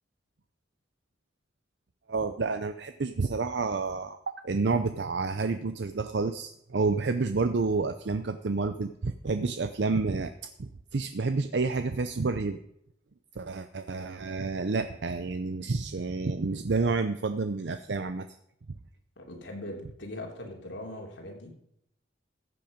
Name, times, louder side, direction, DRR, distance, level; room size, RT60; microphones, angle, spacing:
voice 1, 2.1-10.3 10.6-12.6 13.4-18.3, right 4 dB, 65° right, 10 dB, 0.6 m, -29 dB
voice 2, 19.2-21.5, left 1 dB, 80° left, 1 dB, 3.2 m, -40 dB
14.5 x 8.6 x 5.2 m, 0.75 s
head